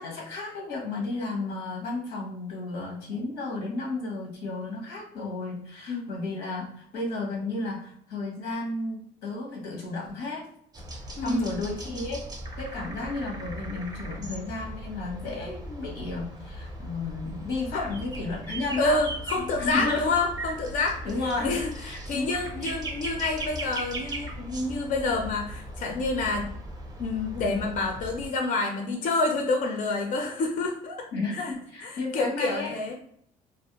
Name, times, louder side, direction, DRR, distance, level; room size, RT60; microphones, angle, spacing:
voice 1, 0.0-10.5 11.2-12.2 12.6-19.0 19.4-20.1 21.0-21.5 21.8-22.7 31.1-32.8, left 2 dB, 90° left, -2 dB, 0.9 m, -33 dB
sound 1, 10.7-28.3, right 1 dB, 20° right, 0.5 m, -38 dB
voice 2, 11.2-11.5 17.7-17.9 18.8-21.0 21.4-26.5 27.0-31.1 31.4-31.5 31.8-32.9, left 3 dB, 50° left, 2 dB, 0.4 m, -28 dB
2.4 x 2.0 x 2.8 m, 0.68 s
cardioid pair, 110°, 17 cm